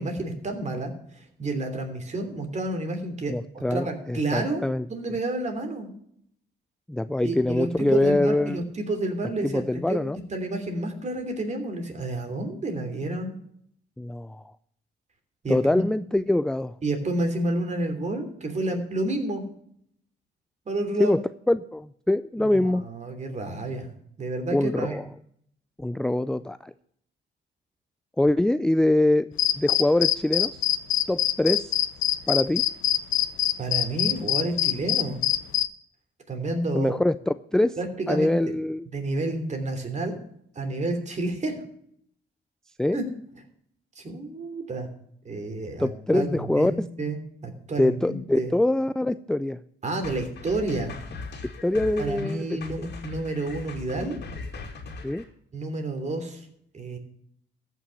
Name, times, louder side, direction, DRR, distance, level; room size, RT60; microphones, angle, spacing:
voice 1, 0.0-3.3 3.7-4.6 4.9-5.9 7.2-10.0 10.3-13.3 15.4-15.8 16.8-19.4 20.7-21.2 22.4-23.9 24.2-25.0 33.6-35.2 36.3-37.0 37.8-38.5 38.9-40.2 40.5-41.5 42.9-43.0 43.9-44.9 45.2-48.5 49.8-51.0 52.0-54.2 55.5-56.5 56.7-57.0, right 2 dB, 35° right, 5 dB, 3.1 m, -30 dB
voice 2, 3.3-4.9 6.9-8.6 9.4-10.2 14.0-14.4 15.5-16.7 21.0-21.2 21.5-22.8 24.5-25.1 25.8-26.7 28.2-30.6 31.1-31.8 32.3-32.7 36.7-37.8 38.1-38.9 42.8-43.0 45.8-46.9 47.8-49.6 51.6-52.6 55.0-55.2, left 1 dB, 5° left, 13 dB, 0.3 m, -24 dB
sound 1, 29.4-35.7, left 12 dB, 90° left, 0.8 m, -23 dB
sound 2, 50.0-55.2, left 4 dB, 55° left, 2.6 m, -39 dB
14.0 x 6.1 x 7.1 m, 0.68 s
cardioid pair, 90°, 20 cm